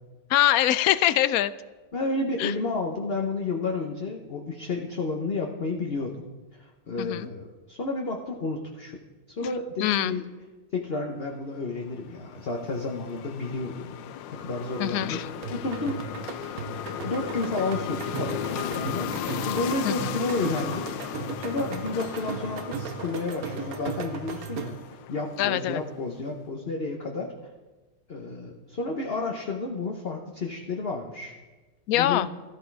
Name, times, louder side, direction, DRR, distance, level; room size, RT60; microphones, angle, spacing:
voice 1, 0.3-1.5 2.4-2.5 7.0-7.3 9.8-10.1 14.8-15.3 19.8-20.1 25.4-25.8 31.9-32.3, left 13 dB, 70° left, 16 dB, 0.9 m, -23 dB
voice 2, 1.9-6.2 6.5-9.0 9.4-10.2 10.7-13.9 14.3-15.2 15.5-16.0 17.0-20.9 21.4-24.8 25.1-27.3 28.1-31.3 31.9-32.3, left 3 dB, 40° left, 1 dB, 1.2 m, -31 dB
sound 1, 11.6-26.0, left 11 dB, 90° left, 1.4 m, -36 dB
sound 2, 15.4-24.9, right 7 dB, 60° right, 1.2 m, -37 dB
14.5 x 14.0 x 4.7 m, 1.2 s
omnidirectional pair, 1.9 m